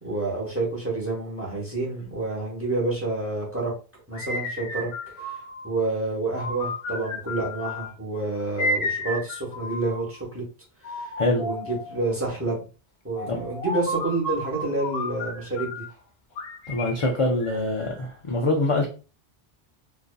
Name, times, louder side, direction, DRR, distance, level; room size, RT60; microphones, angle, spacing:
voice 1, 0.0-3.7 4.1-5.4 5.6-10.4 10.8-11.1 11.4-12.6 13.0-15.8, right 2 dB, 15° right, -4 dB, 0.9 m, -29 dB
sound 1, 4.1-5.7 6.3-7.9 8.6-10.2 10.8-12.0 13.2-15.9 16.4-18.1, left 1 dB, 75° left, 0.8 m, -32 dB
voice 2, 16.7-18.9, left 2 dB, 55° left, 1 dB, 0.3 m, -24 dB
2.5 x 2.4 x 2.2 m, 0.34 s
omnidirectional pair, 1.0 m